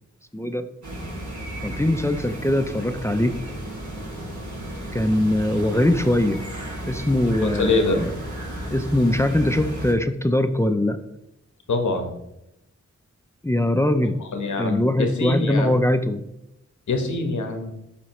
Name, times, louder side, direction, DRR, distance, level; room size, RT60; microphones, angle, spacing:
voice 1, 0.3-0.6 1.6-3.3 4.9-6.4 6.9-8.1 8.7-11.0 13.4-14.2 14.6-16.2, left 1 dB, 10° left, 9 dB, 0.5 m, -21 dB
sound 1, 0.8-9.9, right 1 dB, 80° right, 1.9 m, -33 dB
voice 2, 7.3-8.0 11.7-12.1 14.2-15.8 16.9-17.7, left 3 dB, 90° left, 5 dB, 1.1 m, -24 dB
11.0 x 4.2 x 3.0 m, 0.86 s
wide cardioid pair, 65°, 29 cm